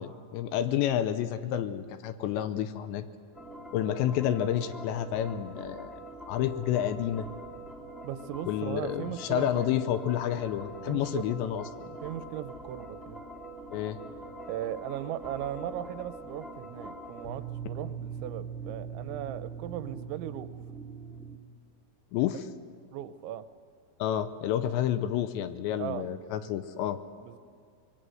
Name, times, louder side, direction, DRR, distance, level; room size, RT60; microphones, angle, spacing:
voice 1, 0.0-3.1 3.7-5.9 6.3-7.3 8.5-11.6 13.7-14.0 22.1-22.5 24.0-27.0, left 11 dB, 80° left, 11 dB, 2.9 m, -29 dB
sound 1, 3.3-21.4, right 3 dB, ahead, 1.2 m, -43 dB
voice 2, 8.0-9.7 10.9-11.4 12.0-13.2 14.5-20.5 22.9-23.5 25.8-26.1 27.2-27.4, right 11 dB, 80° right, 12 dB, 3.0 m, -37 dB
25.0 x 21.0 x 7.8 m, 2.2 s
omnidirectional pair, 5.4 m